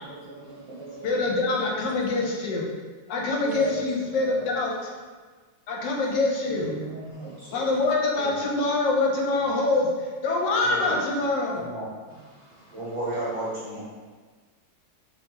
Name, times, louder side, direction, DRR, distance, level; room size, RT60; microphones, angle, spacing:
voice 1, 0.0-2.0 3.4-3.8 4.1-4.5 6.5-7.9 10.5-11.0 12.3-12.8, right 2 dB, 75° right, -9 dB, 0.6 m, -39 dB
voice 2, 1.0-2.6 3.1-4.9 5.7-6.7 7.5-9.9 10.2-11.6, left 3 dB, 70° left, -1 dB, 1.3 m, -25 dB
voice 3, 10.6-11.0 11.5-11.9 12.7-13.8, right 1 dB, 60° right, -8 dB, 1.5 m, -32 dB
3.3 x 3.3 x 3.0 m, 1.4 s
omnidirectional pair, 2.1 m